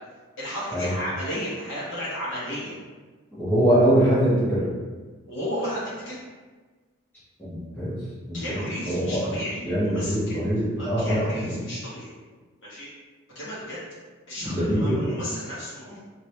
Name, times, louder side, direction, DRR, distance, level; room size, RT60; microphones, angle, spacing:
voice 1, 0.4-2.7 5.3-6.2 8.3-10.4 10.8-12.1 12.6-12.9 13.3-13.8 14.3-16.0, equal, 55° left, -10 dB, 1.2 m, -33 dB
voice 2, 3.3-4.6 7.5-8.0 8.3-9.4 9.6-11.6 14.4-15.2, right 1 dB, 10° left, -12 dB, 1.4 m, -23 dB
3.1 x 2.9 x 2.8 m, 1.4 s
head